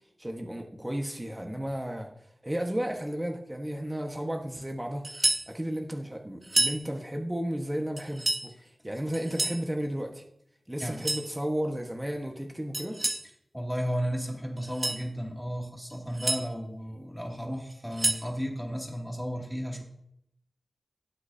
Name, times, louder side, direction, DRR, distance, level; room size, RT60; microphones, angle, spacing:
voice 1, 0.2-2.1 2.4-5.1 5.5-10.2 10.7-13.0, equal, 15° right, 2 dB, 1.4 m, -33 dB
sound 1, 5.0-5.5 6.4-6.8 8.0-8.5 9.1-9.6 10.8-11.3 12.7-13.3 14.6-15.0 15.9-16.4 17.7-18.3, right 1 dB, 40° right, 1.7 m, -29 dB
voice 2, 13.5-19.8, equal, 5° left, 0 dB, 2.6 m, -34 dB
17.5 x 7.9 x 2.8 m, 0.74 s
cardioid pair, 50°, 0 cm